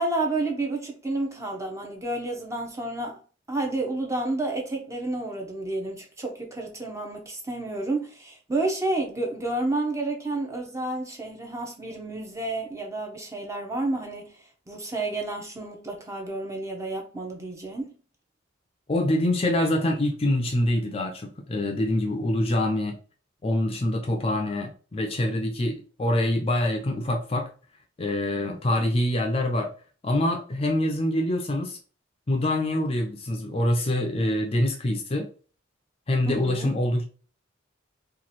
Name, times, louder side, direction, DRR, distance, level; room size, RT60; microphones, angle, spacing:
voice 1, 0.0-3.2 3.5-14.4 14.7-18.0 36.3-36.7, right 2 dB, 15° right, 0.8 m, -30 dB
voice 2, 18.9-23.0 23.4-27.5 28.0-29.7 30.0-31.8 32.3-35.3 36.1-37.0, left 1 dB, 30° left, 0.5 m, -25 dB
3.0 x 2.5 x 4.1 m
head